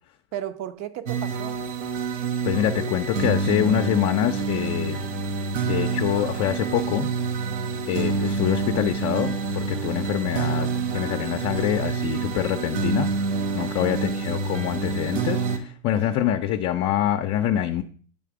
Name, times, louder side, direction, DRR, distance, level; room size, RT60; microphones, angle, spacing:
voice 1, 0.3-1.6 13.6-14.0 15.9-16.3, right 11 dB, 45° right, 9 dB, 0.8 m, -35 dB
sound 1, 1.1-15.6, right 4 dB, 85° right, 1.0 m, -27 dB
voice 2, 2.4-5.0 5.6-7.1 7.9-13.1 13.5-17.8, left 11 dB, 40° left, 5 dB, 0.6 m, -25 dB
8.5 x 3.3 x 4.8 m, 0.43 s
hypercardioid pair, 95°, 36 cm